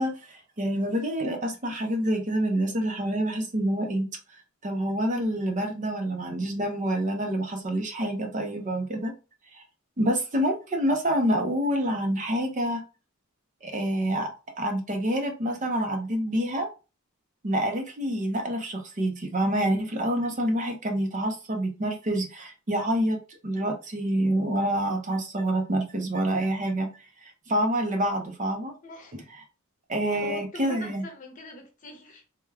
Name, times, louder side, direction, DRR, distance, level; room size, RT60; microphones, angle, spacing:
voice 1, 0.0-4.1 4.6-9.1 9.5-9.6 10.0-12.8 13.6-14.3 14.6-16.7 17.4-26.9 27.2-28.7 29.9-31.0, right 1 dB, 35° right, 0.6 m, -27 dB
voice 2, 28.8-29.3 30.1-32.2, left 1 dB, 35° left, 0.9 m, -42 dB
3.4 x 2.1 x 3.3 m
head